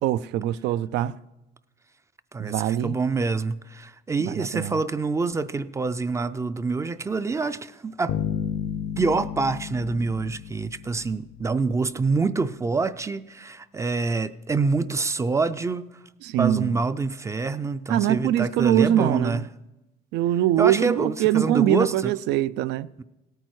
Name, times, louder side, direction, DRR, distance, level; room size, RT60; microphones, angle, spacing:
voice 1, 0.0-1.2 2.4-3.0 4.3-4.8 16.2-16.8 17.9-19.5 20.1-22.9, right 12 dB, 85° right, 0.4 m, -23 dB
voice 2, 2.3-8.2 9.0-16.0 16.4-19.4 20.6-22.1 23.0-23.1, right 4 dB, 15° right, 0.3 m, -26 dB
sound 1, 8.1-11.5, left 9 dB, 80° left, 0.6 m, -32 dB
17.0 x 9.0 x 4.6 m
cardioid pair, 135°, 17 cm